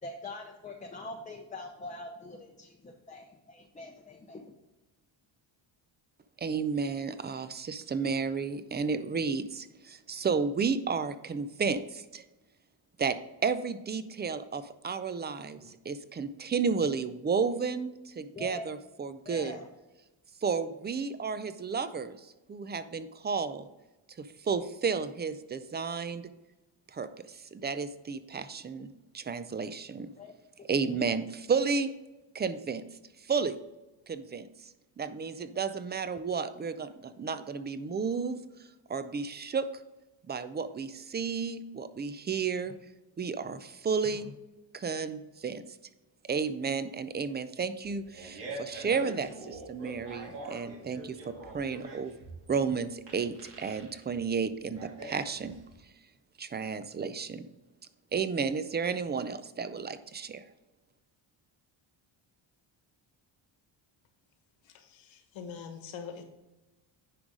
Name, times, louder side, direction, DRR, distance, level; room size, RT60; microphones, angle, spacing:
voice 1, 0.0-4.6 15.6-15.7 18.3-18.7 19.2-19.7 30.2-30.3 30.6-31.0 43.5-43.6 44.0-44.3, left 2 dB, 15° left, 2 dB, 0.7 m, -44 dB
voice 2, 6.4-12.2 13.0-19.6 20.4-23.7 24.2-26.3 26.9-30.1 30.7-31.9 32.3-32.8 33.2-33.6 34.1-34.7 35.0-39.7 40.3-42.7 43.2-44.3 44.7-45.6 46.3-52.2 52.5-55.6 56.4-57.4 58.1-60.5, right 5 dB, 20° right, 13 dB, 0.4 m, -32 dB
Fart, 47.8-55.8, right 2 dB, 90° right, 2.8 m, -44 dB
voice 3, 64.6-66.2, left 6 dB, 75° left, 6 dB, 1.5 m, -44 dB
10.0 x 4.9 x 3.7 m, 1.0 s
cardioid pair, 110°, 47 cm